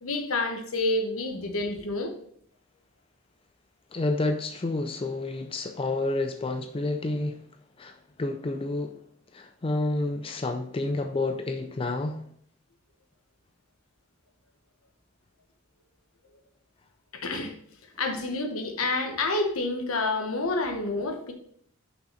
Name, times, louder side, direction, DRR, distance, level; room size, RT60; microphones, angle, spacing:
voice 1, 0.0-2.1 17.1-17.5 18.0-21.3, left 2 dB, 80° left, 1.2 m, -28 dB
voice 2, 3.9-7.4 7.8-9.0 9.3-12.2, left 2 dB, 25° left, 0.4 m, -29 dB
6.3 x 5.8 x 4.0 m
head